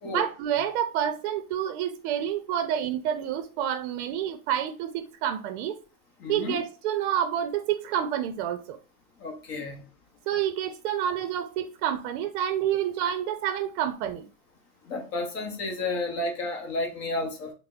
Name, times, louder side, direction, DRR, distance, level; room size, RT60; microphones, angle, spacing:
voice 1, 0.0-5.8 6.3-8.8 10.3-14.3, right 10 dB, 55° right, 0.5 m, -28 dB
voice 2, 6.2-6.6 9.2-9.8 14.9-17.5, left 2 dB, 35° left, 0.7 m, -31 dB
3.3 x 2.1 x 3.6 m
supercardioid pair, 150°, 43 cm